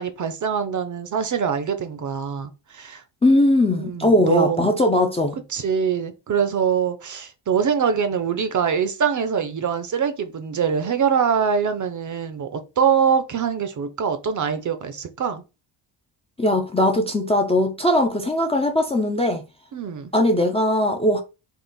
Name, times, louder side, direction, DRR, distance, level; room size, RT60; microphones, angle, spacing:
voice 1, 0.0-3.0 3.8-4.8 5.5-15.4 19.7-20.1, right 7 dB, 40° right, 0.5 m, -23 dB
voice 2, 3.2-5.4 16.4-19.4 20.1-21.2, left 1 dB, 15° left, 0.4 m, -19 dB
3.7 x 2.5 x 3.9 m
cardioid pair, 135°, 49 cm